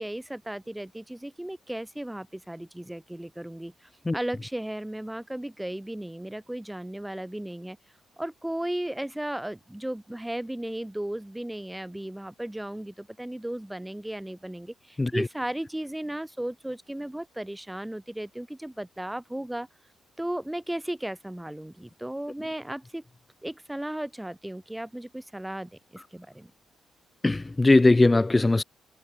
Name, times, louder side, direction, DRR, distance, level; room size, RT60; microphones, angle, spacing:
voice 1, 0.0-7.8 8.2-19.7 20.2-23.0 23.4-26.5, right 1 dB, 10° right, 1.5 m, -35 dB
voice 2, 27.2-28.6, left 2 dB, 20° left, 0.9 m, -20 dB
hypercardioid pair, 50°, 0 cm